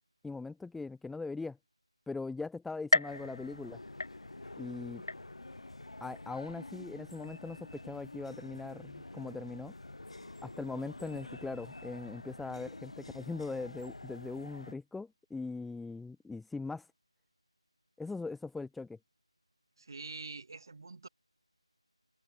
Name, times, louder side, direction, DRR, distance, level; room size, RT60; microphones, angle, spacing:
voice 1, 0.2-1.6 2.1-3.8 4.6-5.0 6.0-9.7 10.4-16.9 18.0-19.0, left 3 dB, ahead, 0.6 m, -40 dB
sound 1, 2.9-4.6 5.1-5.7 6.2-6.3 7.2-7.3, left 3 dB, 50° left, 0.8 m, -34 dB
sound 2, 3.1-14.7, left 2 dB, 70° left, 1.1 m, -48 dB
voice 2, 19.8-21.1, right 3 dB, 40° right, 2.4 m, -45 dB
figure-of-eight pair, 165°, 3 cm